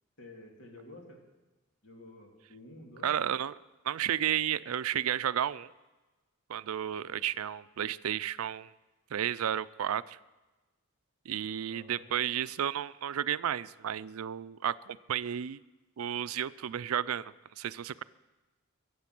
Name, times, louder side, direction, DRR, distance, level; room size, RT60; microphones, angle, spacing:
voice 1, 0.2-1.2 1.8-3.1 11.7-12.1 17.9-18.0, left 1 dB, 60° left, 1 dB, 2.8 m, -51 dB
voice 2, 3.0-3.5 3.8-5.7 6.5-8.7 9.1-10.2 11.3-15.6 16.0-18.0, right 10 dB, 90° right, 17 dB, 0.4 m, -32 dB
23.0 x 7.9 x 6.0 m, 1.2 s
head